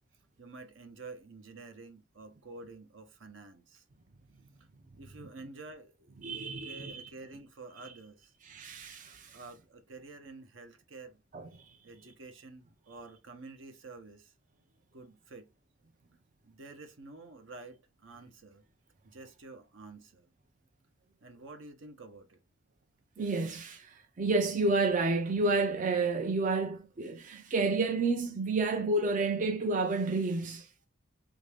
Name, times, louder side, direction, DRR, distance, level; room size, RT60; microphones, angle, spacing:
voice 1, 0.4-3.8 5.0-6.1 6.6-8.3 9.3-11.2 11.8-14.3 14.9-15.5 16.4-18.6 19.0-20.3 21.2-22.4, right 3 dB, 70° right, 0.8 m, -49 dB
voice 2, 6.2-7.1 8.4-9.4 11.3-11.7 23.2-30.7, right 3 dB, 40° right, 0.4 m, -30 dB
3.5 x 2.6 x 3.3 m
head